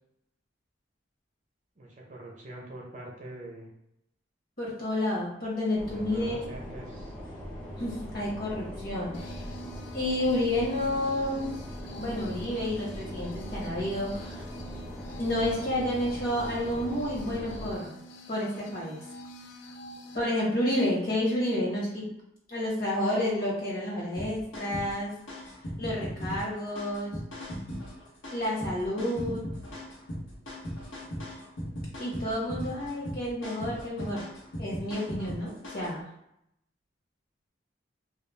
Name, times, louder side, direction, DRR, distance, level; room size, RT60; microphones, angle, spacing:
voice 1, 1.8-3.7 5.9-7.2, right 1 dB, 40° right, -2 dB, 0.6 m, -44 dB
voice 2, 4.6-6.4 7.8-9.4 9.9-11.5 12.0-14.5 15.2-18.0 18.3-19.0 20.1-22.1 22.5-25.1 25.8-27.2 28.3-29.4 32.0-34.3 34.6-36.1, left 1 dB, 50° left, -5 dB, 1.0 m, -30 dB
sound 1, 5.8-17.8, equal, 5° left, 0.5 m, -40 dB
sound 2, 9.1-20.2, equal, 70° left, 0.3 m, -46 dB
sound 3, 24.2-36.0, equal, 85° left, 0.9 m, -38 dB
2.3 x 2.0 x 3.1 m, 0.78 s
head